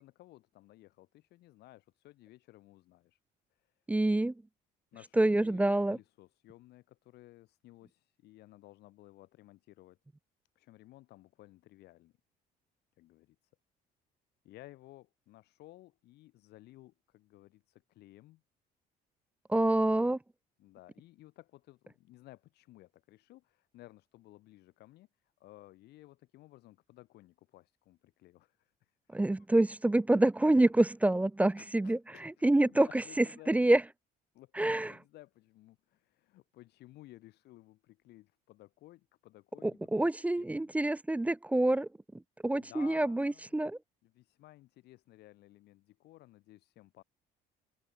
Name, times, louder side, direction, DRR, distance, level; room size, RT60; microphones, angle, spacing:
voice 1, 0.0-3.2 3.5-3.7 4.9-10.0 10.6-12.1 13.0-13.4 14.4-18.4 20.6-25.1 25.4-29.2 31.6-33.6 34.3-40.7 42.6-43.6 44.0-47.0, left 16 dB, 80° left, 2.0 m, -56 dB
voice 2, 3.9-4.3 5.2-6.0 19.5-20.2 29.1-32.0 32.4-33.8 34.6-34.9 39.6-41.9 42.4-43.8, right 1 dB, 10° right, 0.4 m, -27 dB
cardioid pair, 110°, 17 cm